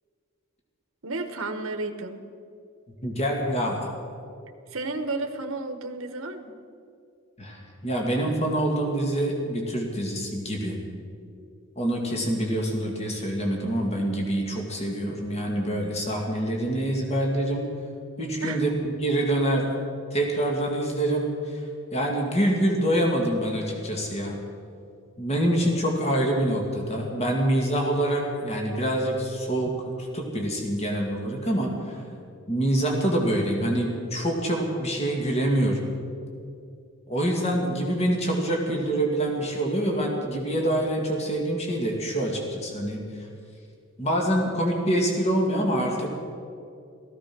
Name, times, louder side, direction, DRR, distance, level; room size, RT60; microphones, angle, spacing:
voice 1, 1.0-2.3 4.7-6.6 18.4-18.6, right 3 dB, 70° right, 7 dB, 1.1 m, -32 dB
voice 2, 3.0-3.9 7.4-10.8 11.8-17.7 18.2-19.8 20.1-21.6 21.9-24.4 25.2-29.7 30.1-32.0 32.5-35.8 37.1-43.0 44.0-46.1, right 1 dB, 30° left, 0 dB, 2.3 m, -26 dB
16.0 x 14.5 x 6.2 m, 2.4 s
head